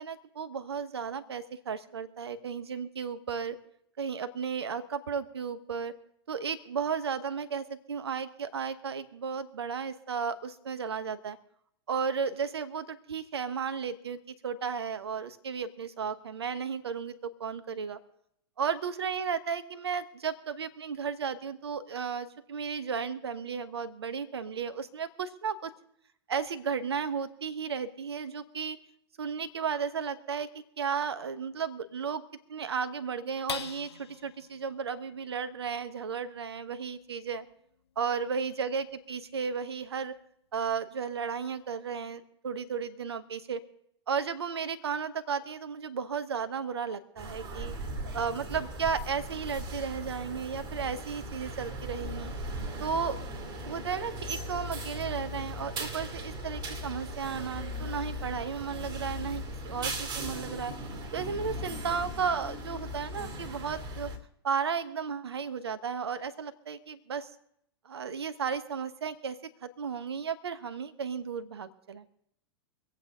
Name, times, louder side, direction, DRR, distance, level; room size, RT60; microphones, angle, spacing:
voice 1, 0.0-3.6 4.0-5.9 6.3-11.4 11.9-18.0 18.6-25.7 26.3-28.8 29.2-32.2 32.5-37.5 38.0-40.1 40.5-43.6 44.1-47.7 48.1-52.3 52.8-53.2 53.7-60.7 61.1-64.1 64.4-67.3 67.8-72.0, right 6 dB, 70° right, 11 dB, 1.1 m, -34 dB
sound 1, 33.5-40.2 40.7-40.8 41.2-41.7, left 7 dB, 70° left, 0.7 m, -47 dB
sound 2, 47.2-64.2, right 1 dB, 30° right, 2.5 m, -38 dB
25.0 x 8.4 x 3.7 m, 0.73 s
figure-of-eight pair, 95°, 14 cm